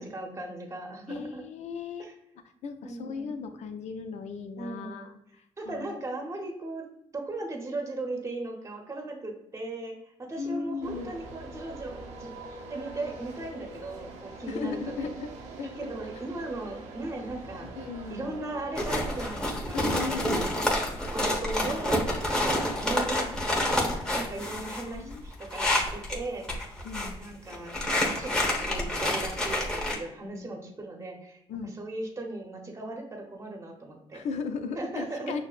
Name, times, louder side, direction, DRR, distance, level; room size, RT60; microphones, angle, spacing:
voice 1, 0.0-1.4 2.0-2.1 2.8-3.4 4.6-5.1 5.6-6.9 7.1-15.1 15.8-17.7 18.1-20.3 21.1-23.3 23.7-26.7 27.1-34.2 34.7-35.4, right 2 dB, 25° right, 2 dB, 0.8 m, -38 dB
voice 2, 1.1-2.1 2.6-5.1 5.7-5.9 10.4-11.1 14.4-15.3 15.6-15.9 17.7-18.4 19.7-20.5 24.6-25.2 26.8-27.2 30.2-30.5 31.5-31.8 34.1-35.4, left 4 dB, 70° left, 8 dB, 0.5 m, -36 dB
sound 1, 10.8-19.3, right 2 dB, 90° right, 0.7 m, -44 dB
sound 2, 18.7-26.2 26.4-27.1 27.5-29.9, left 1 dB, 5° left, 1.1 m, -28 dB
6.2 x 2.1 x 2.4 m, 0.82 s
cardioid pair, 80°, 12 cm